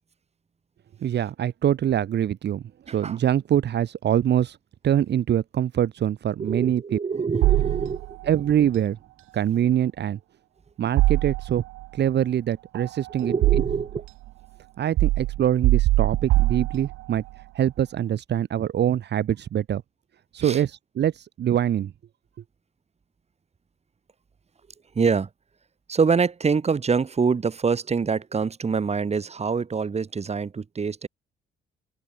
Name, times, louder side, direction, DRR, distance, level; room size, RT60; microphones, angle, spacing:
voice 1, 1.0-4.6 4.8-7.0 8.3-9.0 9.3-10.2 10.8-11.6 11.9-13.3 14.8-17.2 17.5-19.8 20.3-21.9, right 10 dB, 60° right, 1.2 m, -24 dB
voice 2, 2.9-3.2 6.4-8.2 13.2-14.0 20.4-20.6 25.0-25.3 25.9-31.1, right 5 dB, 30° right, 1.9 m, -25 dB
sound 1, 7.4-8.3 11.0-11.8 12.7-14.1 15.0-17.2, right 18 dB, 85° right, 0.5 m, -22 dB
open air
cardioid pair, 90°, 20 cm